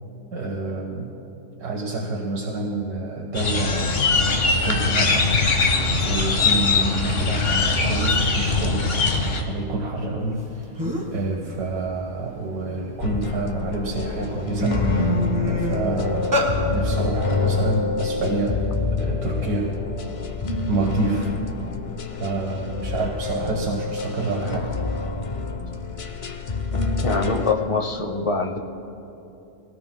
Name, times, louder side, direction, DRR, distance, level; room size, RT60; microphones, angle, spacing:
voice 1, 0.3-1.2 1.6-4.0 4.5-5.5 6.1-10.7 11.1-15.1 15.4-18.6 18.9-19.7 20.7-21.4 22.2-24.7, right 2 dB, 85° right, -1 dB, 1.7 m, -28 dB
sound 1, 3.3-9.4, left 3 dB, 45° left, 1.2 m, -21 dB
sound 2, 10.4-10.5 10.8-11.2 11.7-13.2 13.8-14.0 14.3-16.5, equal, 15° right, 1.4 m, -26 dB
sound 3, 13.0-27.5, left 4 dB, 65° left, 0.3 m, -27 dB
voice 2, 27.0-28.6, left 4 dB, 30° left, 4 dB, 0.6 m, -24 dB
22.5 x 17.5 x 2.2 m, 2.8 s
omnidirectional pair, 1.5 m